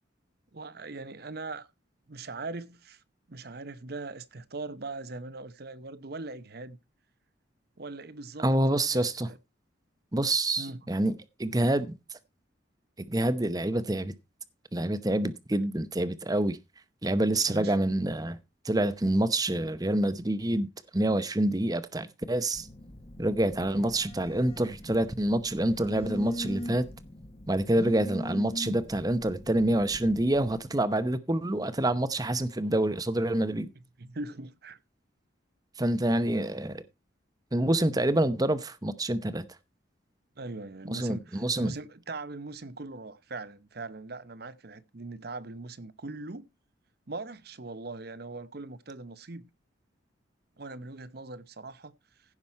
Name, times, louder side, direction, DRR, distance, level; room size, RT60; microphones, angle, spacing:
voice 1, 0.5-1.7 2.1-3.0 3.3-6.8 7.8-8.5 8.9-9.4 10.6-10.8 15.5-15.7 17.5-17.8 34.0-34.8 40.4-46.5 47.1-49.5 50.6-51.9, right 3 dB, 50° right, 0.8 m, -40 dB
voice 2, 8.4-9.3 10.1-11.9 13.1-14.1 14.7-16.6 17.0-18.4 18.6-20.7 20.9-22.7 23.2-26.9 27.5-33.7 35.8-36.8 37.5-39.4 40.8-41.7, right 1 dB, 20° right, 0.8 m, -27 dB
Telephone, 22.5-30.6, left 1 dB, 30° left, 1.0 m, -41 dB
15.5 x 6.1 x 4.2 m
head